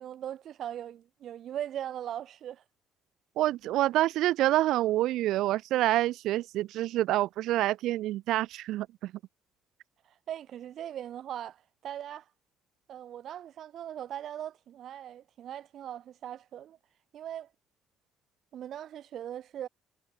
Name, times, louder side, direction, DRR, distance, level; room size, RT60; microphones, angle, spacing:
voice 1, 0.0-2.6 10.1-12.3 12.9-16.8 17.1-17.5 18.5-19.7, right 10 dB, 55° right, 7.0 m, -40 dB
voice 2, 3.4-9.1, right 15 dB, 75° right, 2.1 m, -27 dB
cardioid pair, 120°, 0 cm